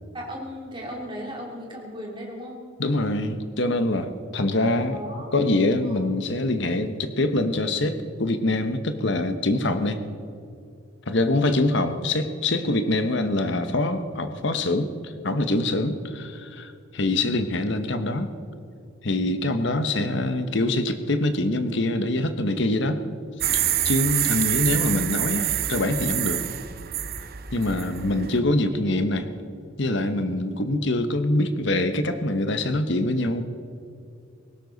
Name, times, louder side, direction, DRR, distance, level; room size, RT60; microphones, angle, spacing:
voice 1, 0.1-2.6 4.9-5.3 5.8-6.0 11.5-11.7, equal, 25° right, -2 dB, 2.9 m, -36 dB
voice 2, 2.8-5.0 5.3-10.0 11.1-18.3 19.0-23.0 23.5-26.4 27.5-29.3 29.8-33.4, left 2 dB, 55° left, 9 dB, 1.0 m, -24 dB
sound 1, 23.4-28.4, right 11 dB, 45° right, 0.7 m, -26 dB
19.5 x 17.5 x 4.0 m, 2.5 s
head